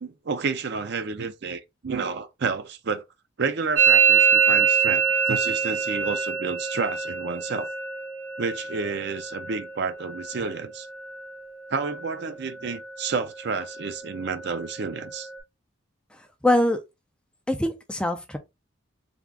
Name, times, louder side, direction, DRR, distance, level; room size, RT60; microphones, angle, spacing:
voice 1, 0.0-3.0 3.4-7.7 8.4-10.9 11.7-15.3, right 5 dB, 50° right, 0.5 m, -30 dB
Musical instrument, 3.8-11.4 11.7-12.2 12.5-13.1 13.4-15.4, right 7 dB, 80° right, 1.2 m, -25 dB
voice 2, 16.1-16.8 17.5-18.4, left 1 dB, 5° left, 0.4 m, -24 dB
3.4 x 2.4 x 3.6 m
head